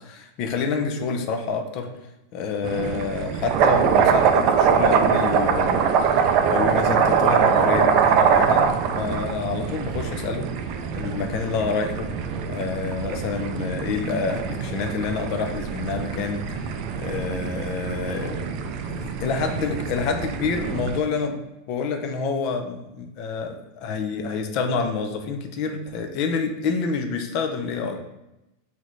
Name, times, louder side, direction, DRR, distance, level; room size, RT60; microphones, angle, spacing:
voice 1, 0.0-1.9 2.3-5.9 6.5-10.5 10.9-12.1 12.5-16.7 17.0-18.5 18.9-21.4 21.7-28.0, left 5 dB, 35° left, 5 dB, 0.5 m, -28 dB
sound 1, 2.6-21.0, right 6 dB, 40° right, 0.4 m, -23 dB
6.1 x 2.7 x 3.1 m, 0.93 s
supercardioid pair, 170°, 0 cm